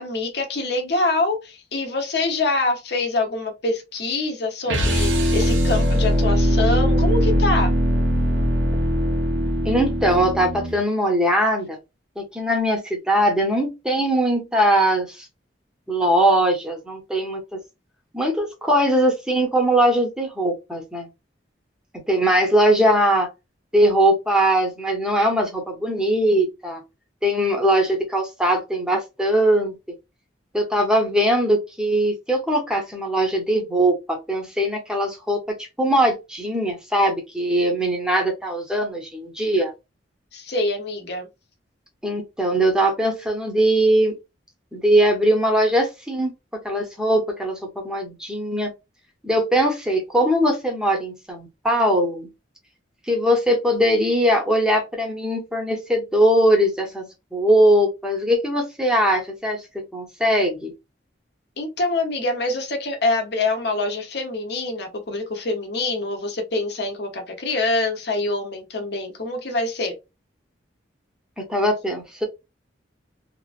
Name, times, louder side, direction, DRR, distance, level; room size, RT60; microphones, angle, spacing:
voice 1, 0.0-7.7 40.3-41.3 61.6-70.0, left 2 dB, 60° left, 0.8 m, -25 dB
sound 1, 4.7-10.8, equal, 85° right, 0.9 m, -20 dB
voice 2, 9.6-11.8 12.2-15.3 15.9-17.6 18.1-21.1 21.9-23.3 23.7-26.8 27.2-29.8 30.5-39.7 42.0-44.2 44.7-48.7 49.2-52.3 53.1-60.7 71.4-72.2, right 1 dB, 5° right, 0.7 m, -21 dB
2.9 x 2.4 x 2.4 m
head